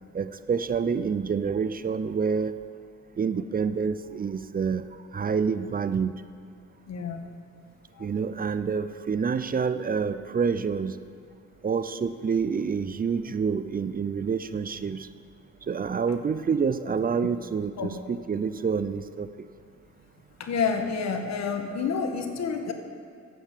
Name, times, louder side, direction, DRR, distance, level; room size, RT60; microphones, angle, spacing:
voice 1, 0.1-2.6 3.2-6.1 8.0-11.0 11.6-15.1 15.7-19.3, right 6 dB, 30° right, 13 dB, 0.5 m, -27 dB
voice 2, 6.9-7.3 8.0-8.1 17.8-17.9 20.4-22.7, left 5 dB, 60° left, 5 dB, 1.5 m, -29 dB
12.0 x 8.5 x 7.4 m, 2.3 s
cardioid pair, 90°, 30 cm